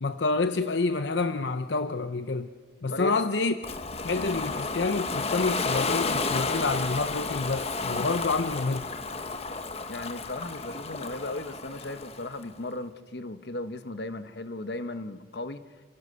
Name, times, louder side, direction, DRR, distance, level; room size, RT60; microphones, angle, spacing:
voice 1, 0.0-2.5 2.8-3.5 4.0-8.9, left 3 dB, 80° left, 10 dB, 0.8 m, -28 dB
Ocean, 3.6-12.5, left 3 dB, 35° left, 1.2 m, -32 dB
voice 2, 9.9-15.6, left 2 dB, 65° left, 10 dB, 1.2 m, -36 dB
29.5 x 18.0 x 6.9 m, 1.4 s
head